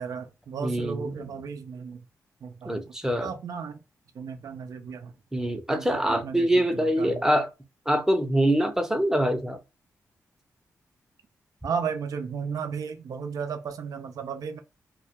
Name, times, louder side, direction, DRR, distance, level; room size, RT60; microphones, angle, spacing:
voice 1, 0.0-2.0 2.4-2.9 3.2-3.8 4.1-5.1 5.7-6.5 7.0-7.2 11.6-14.6, right 6 dB, 70° right, 0.4 m, -34 dB
voice 2, 0.6-1.3 2.6-3.3 5.3-7.5 7.9-9.6, right 1 dB, 10° right, 0.6 m, -24 dB
2.2 x 2.2 x 2.7 m
cardioid pair, 70°, 6 cm